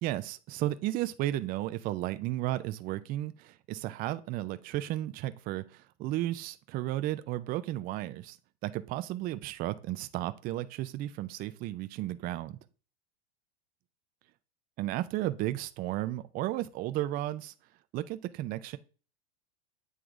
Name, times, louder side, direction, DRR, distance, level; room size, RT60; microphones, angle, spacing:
voice 1, 0.0-8.4 8.6-12.6 14.8-17.5 17.9-18.8, right 15 dB, 30° right, 0.4 m, -34 dB
7.9 x 3.4 x 3.6 m
supercardioid pair, 125°, 33 cm